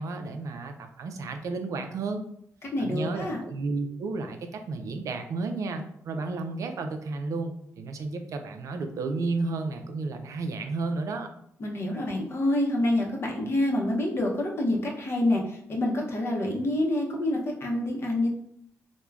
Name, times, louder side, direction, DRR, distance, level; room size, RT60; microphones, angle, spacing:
voice 1, 0.0-2.2 2.8-11.3, right 3 dB, 65° right, 6 dB, 0.4 m, -32 dB
voice 2, 2.7-3.4 11.6-18.3, left 1 dB, 45° left, 0 dB, 0.7 m, -27 dB
3.2 x 2.1 x 2.3 m, 0.70 s
cardioid pair, 85°, 6 cm